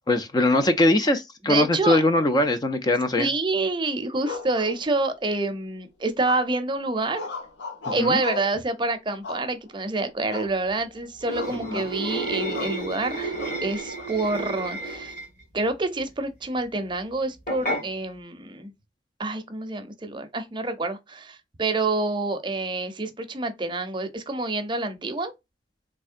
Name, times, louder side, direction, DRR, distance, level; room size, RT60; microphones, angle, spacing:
voice 1, 0.1-3.3 8.0-8.2 11.7-11.8, left 1 dB, 25° left, 0.4 m, -21 dB
voice 2, 1.5-2.0 3.2-7.2 7.9-13.3 13.6-15.2 15.5-18.7 19.2-25.3, right 2 dB, 25° right, 0.6 m, -27 dB
sound 1, 4.2-5.3 6.2-6.7 7.1-8.6 9.2-9.8 10.3-10.6 10.9-11.0 11.4-11.9 12.5-12.8 13.4-14.1, left 3 dB, 80° left, 0.8 m, -36 dB
sound 2, 11.2-15.4 17.5-17.8, right 2 dB, 45° left, 1.7 m, -31 dB
3.6 x 3.1 x 2.4 m
head